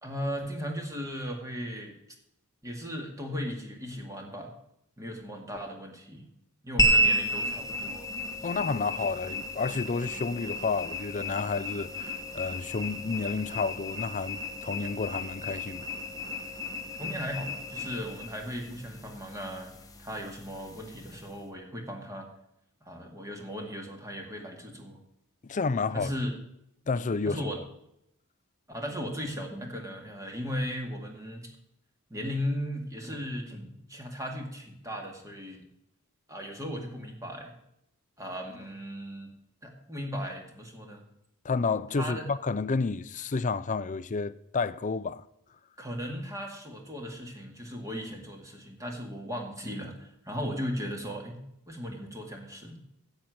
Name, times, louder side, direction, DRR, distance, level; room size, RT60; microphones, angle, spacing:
voice 1, 0.0-1.9 2.6-4.5 5.0-6.3 6.6-8.1 17.0-19.7 20.0-22.3 22.8-25.0 25.9-26.3 27.3-27.6 28.7-31.5 32.1-35.6 36.3-37.5 38.2-39.3 39.6-41.1 42.0-42.3 45.8-51.4 51.7-52.8, equal, 15° right, 2.1 m, -37 dB
sound 1, 6.8-21.4, equal, 15° left, 1.2 m, -32 dB
voice 2, 8.4-15.9 25.4-26.1 26.9-27.5 41.4-45.2, left 4 dB, 35° left, 0.5 m, -30 dB
10.5 x 7.9 x 8.5 m
head